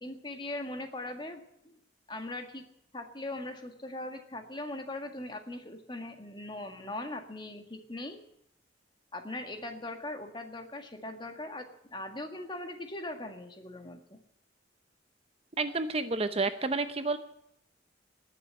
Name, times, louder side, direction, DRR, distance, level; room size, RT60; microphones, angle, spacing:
voice 1, 0.0-1.8 2.1-2.6 2.9-8.2 9.1-14.2, left 2 dB, 25° left, 5 dB, 1.8 m, -40 dB
voice 2, 15.6-17.2, right 3 dB, 35° right, 10 dB, 0.7 m, -30 dB
19.5 x 7.4 x 9.9 m, 0.74 s
head